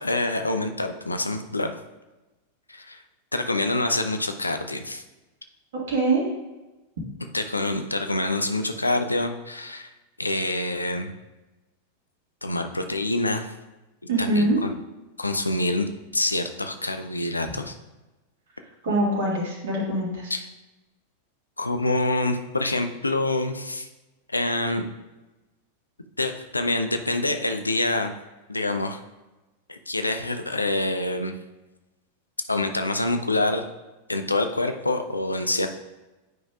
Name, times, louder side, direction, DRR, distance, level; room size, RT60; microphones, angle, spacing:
voice 1, 0.0-1.8 2.7-3.0 3.3-5.0 7.3-9.9 10.2-11.1 12.4-13.5 14.2-14.7 15.2-17.7 20.3-20.5 21.6-23.9 24.3-24.8 26.2-28.2 28.5-29.0 29.7-31.3 32.5-33.7 34.1-35.7, left 2 dB, 80° left, 6 dB, 0.5 m, -26 dB
voice 2, 5.7-6.2 14.1-14.6 18.8-20.3, right 2 dB, 55° right, -3 dB, 1.7 m, -23 dB
9.2 x 5.2 x 2.4 m, 1.1 s
figure-of-eight pair, 90°, 0 cm